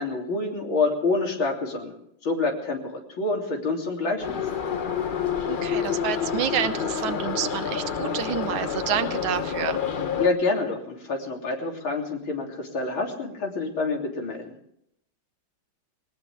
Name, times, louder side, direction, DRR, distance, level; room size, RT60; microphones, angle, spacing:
voice 1, 0.0-1.9 2.2-4.4 10.2-14.6, left 3 dB, 75° left, 1 dB, 4.0 m, -27 dB
Subway metro underground, 4.2-10.3, left 7 dB, 60° left, 0.5 m, -28 dB
voice 2, 5.5-9.8, right 9 dB, 80° right, 11 dB, 1.7 m, -29 dB
20.0 x 19.5 x 3.5 m, 0.75 s
omnidirectional pair, 2.2 m